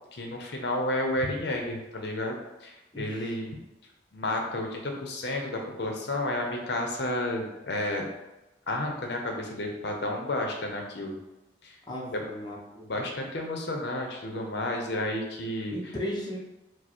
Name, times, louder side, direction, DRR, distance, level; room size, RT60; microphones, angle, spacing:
voice 1, 0.1-2.4 2.6-3.6 4.1-8.1 8.7-11.2 11.6-11.8 12.1-12.2 12.9-15.7, left 1 dB, 60° left, 2 dB, 0.6 m, -31 dB
voice 2, 2.9-3.3 11.9-12.9 15.7-16.4, left 1 dB, 25° left, -3 dB, 0.6 m, -36 dB
4.9 x 2.0 x 4.3 m, 0.97 s
head